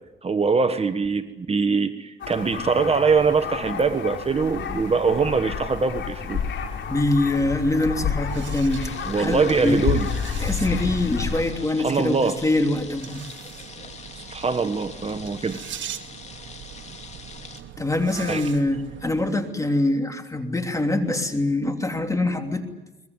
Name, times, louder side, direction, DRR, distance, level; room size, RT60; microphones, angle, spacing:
voice 1, 0.2-6.4 9.1-10.1 11.8-12.4 14.1-15.6 18.3-18.4, right 4 dB, 30° right, 10 dB, 1.4 m, -23 dB
sound 1, 2.2-11.4, left 6 dB, 70° left, 4.7 m, -30 dB
voice 2, 6.9-9.9 10.4-13.2 17.8-22.6, left 2 dB, 15° left, 5 dB, 3.1 m, -24 dB
sound 2, 7.4-19.3, right 10 dB, 70° right, 1.6 m, -41 dB
sound 3, 8.7-17.6, left 4 dB, 35° left, 2.9 m, -43 dB
22.5 x 21.0 x 9.7 m, 1.1 s
cardioid pair, 90°, 20 cm